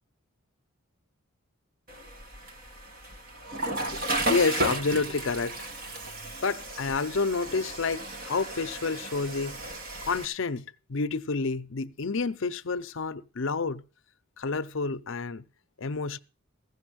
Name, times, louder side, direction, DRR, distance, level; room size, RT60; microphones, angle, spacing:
Water / Toilet flush, 1.9-10.3, right 1 dB, 45° right, 1.4 m, -34 dB
voice 1, 3.9-5.6 6.4-9.6 10.0-13.8 14.4-15.4 15.8-16.2, left 4 dB, 65° left, 0.6 m, -29 dB
16.0 x 6.8 x 6.3 m
head